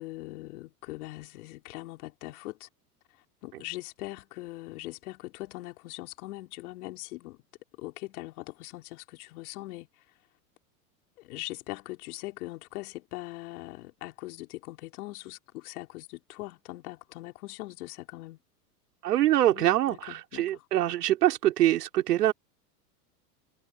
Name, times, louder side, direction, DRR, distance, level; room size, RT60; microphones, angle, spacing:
voice 1, 0.0-2.7 3.4-7.4 7.8-9.9 11.2-18.4 19.5-20.6, left 19 dB, 65° left, 4.3 m, -41 dB
voice 2, 19.0-22.3, right 13 dB, 75° right, 4.2 m, -24 dB
hypercardioid pair, 100°, 47 cm